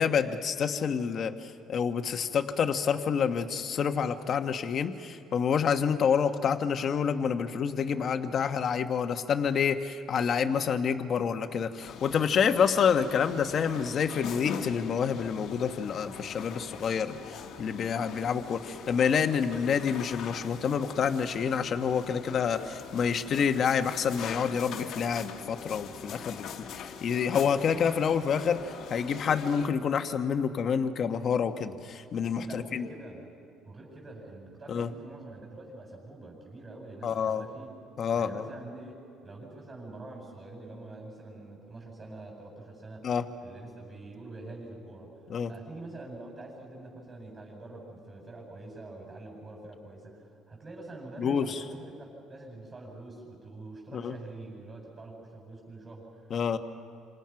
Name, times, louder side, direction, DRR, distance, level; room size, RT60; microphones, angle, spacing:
voice 1, 0.0-32.9 34.7-34.9 37.0-37.4 38.0-38.5 43.0-43.2 45.3-45.5 51.2-51.6 53.9-54.1 56.3-56.6, left 7 dB, 40° left, 7 dB, 1.3 m, -28 dB
sound 1, 11.8-29.7, left 7 dB, 60° left, 1.5 m, -42 dB
voice 2, 32.4-33.3 33.6-37.7 38.1-43.0 43.4-45.2 45.5-56.3, right 2 dB, 25° right, -4 dB, 7.7 m, -45 dB
28.5 x 27.0 x 6.0 m, 2.6 s
cardioid pair, 145°, 0 cm